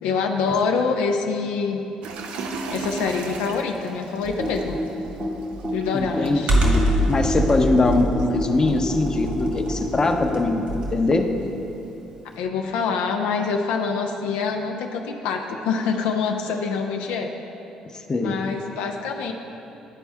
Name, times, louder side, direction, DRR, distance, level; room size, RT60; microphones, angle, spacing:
voice 1, 0.0-1.8 2.7-4.8 5.7-6.5 12.4-17.3 18.2-19.3, left 5 dB, 85° left, 3 dB, 0.4 m, -25 dB
sound 1, 2.0-7.6, right 4 dB, 75° right, 0.5 m, -37 dB
Computer keyboard, 4.2-11.1, equal, 55° right, 1.5 m, -24 dB
voice 2, 5.9-11.3 17.9-18.4, left 2 dB, 30° left, 4 dB, 0.7 m, -22 dB
11.0 x 4.2 x 3.5 m, 3.0 s
supercardioid pair, 65°, 2 cm